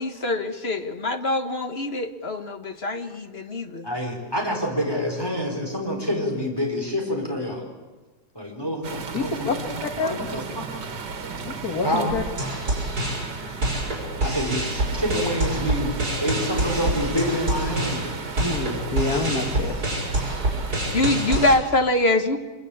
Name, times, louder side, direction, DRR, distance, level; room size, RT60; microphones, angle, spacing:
voice 1, 0.0-3.9 20.9-22.4, left 2 dB, 40° left, 8 dB, 1.4 m, -24 dB
voice 2, 3.8-7.6 8.3-9.6 10.0-10.7 11.8-12.1 14.2-18.1, equal, 15° left, 0 dB, 4.6 m, -27 dB
sound 1, 8.8-21.6, right 5 dB, 90° right, 2.4 m, -35 dB
voice 3, 9.1-9.6 9.8-10.2 11.4-12.2 18.4-19.8, left 3 dB, 60° left, 4 dB, 2.4 m, -27 dB
sound 2, 12.1-21.6, right 1 dB, 60° right, 5.9 m, -27 dB
25.5 x 22.5 x 8.6 m, 1.2 s
omnidirectional pair, 1.8 m